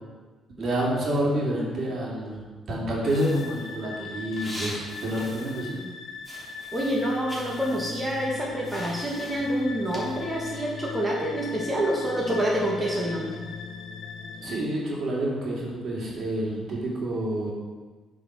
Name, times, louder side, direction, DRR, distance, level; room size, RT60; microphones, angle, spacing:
voice 1, 0.6-2.4 2.7-5.8 14.4-17.5, right 1 dB, 55° right, -3 dB, 2.7 m, -28 dB
sound 1, 3.0-14.6, left 5 dB, 75° left, 1.0 m, -40 dB
sound 2, 3.1-5.9 6.2-10.5, equal, ahead, 2.9 m, -43 dB
voice 2, 6.7-13.3, equal, 20° right, -4 dB, 1.8 m, -27 dB
7.8 x 4.8 x 6.4 m, 1.3 s
cardioid pair, 90°, 0 cm